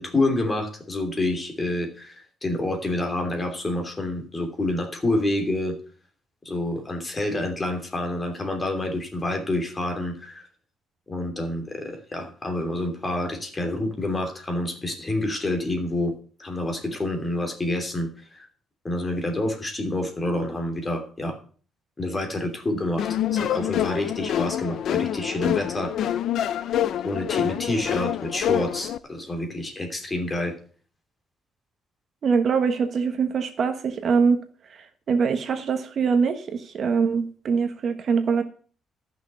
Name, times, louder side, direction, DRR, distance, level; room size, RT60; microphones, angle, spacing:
voice 1, 0.0-5.8 6.4-10.5 11.1-18.5 18.8-21.4 22.0-26.1 27.0-30.6, left 1 dB, 20° left, 4 dB, 3.0 m, -28 dB
sound 1, 23.0-29.0, left 11 dB, 65° left, 0.5 m, -26 dB
voice 2, 32.2-34.4 34.7-38.4, right 5 dB, 50° right, 7 dB, 1.3 m, -23 dB
13.5 x 6.3 x 6.8 m, 0.42 s
cardioid pair, 135°, 0 cm